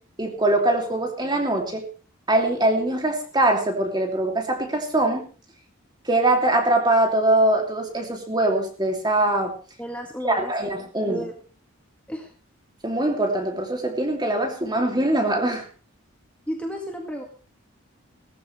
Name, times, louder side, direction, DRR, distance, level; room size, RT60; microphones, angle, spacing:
voice 1, 0.2-1.8 2.3-5.2 6.0-9.5 10.2-11.2 12.8-15.6, right 1 dB, 20° right, 3 dB, 2.8 m, -22 dB
voice 2, 9.8-10.5 11.0-11.3 12.1-12.3 16.5-17.2, equal, 5° left, 1 dB, 1.9 m, -33 dB
18.5 x 14.0 x 3.3 m, 0.36 s
head